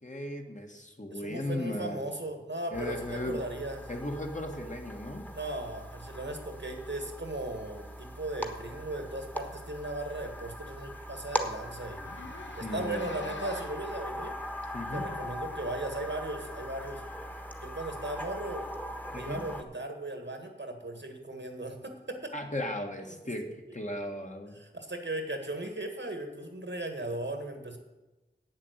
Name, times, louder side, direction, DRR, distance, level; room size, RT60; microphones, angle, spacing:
voice 1, 0.0-2.0 2.7-3.4 3.9-5.2 12.6-13.1 14.7-15.1 19.1-19.4 22.3-23.5 23.7-24.6, left 1 dB, 40° left, 2 dB, 1.8 m, -36 dB
voice 2, 1.1-3.9 5.3-12.0 12.6-14.3 14.9-17.0 17.6-18.7 19.1-22.3 24.6-27.8, right 2 dB, 80° right, 5 dB, 1.8 m, -37 dB
sound 1, 2.7-19.6, equal, 10° left, 1.4 m, -40 dB
Zipper (clothing), 12.0-13.9 14.6-14.7 15.8-15.9, left 2 dB, 80° left, 1.0 m, -44 dB
8.7 x 7.4 x 8.2 m, 1.1 s
wide cardioid pair, 40°, 19 cm